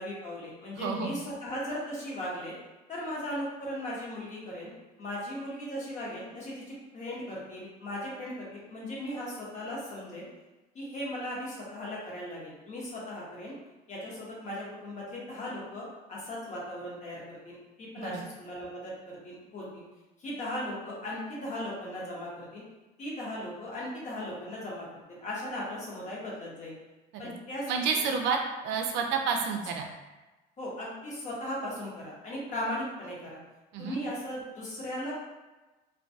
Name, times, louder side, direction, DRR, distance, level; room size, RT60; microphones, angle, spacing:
voice 1, 0.0-2.6 2.9-4.7 5.0-10.3 10.7-13.5 13.9-19.8 20.2-22.6 23.0-26.8 27.2-27.7 30.6-33.4 33.8-35.1, left 1 dB, 40° left, -5 dB, 0.8 m, -37 dB
voice 2, 0.7-1.2 18.0-18.2 27.7-29.9 33.7-34.0, right 5 dB, 75° right, 3 dB, 0.4 m, -30 dB
2.2 x 2.2 x 2.6 m, 1.1 s
cardioid pair, 115°, 19 cm